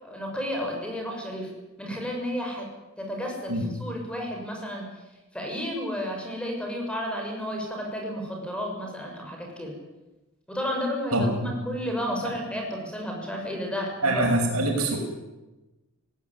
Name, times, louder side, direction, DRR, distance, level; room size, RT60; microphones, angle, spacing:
voice 1, 0.0-1.5 1.8-2.7 3.0-4.8 5.3-9.7 10.5-14.2 14.6-15.0, equal, 5° left, 0 dB, 6.7 m, -32 dB
voice 2, 11.1-11.5 12.2-12.3 14.0-15.0, right 1 dB, 85° right, 2 dB, 6.5 m, -24 dB
20.0 x 18.5 x 9.8 m, 1.1 s
head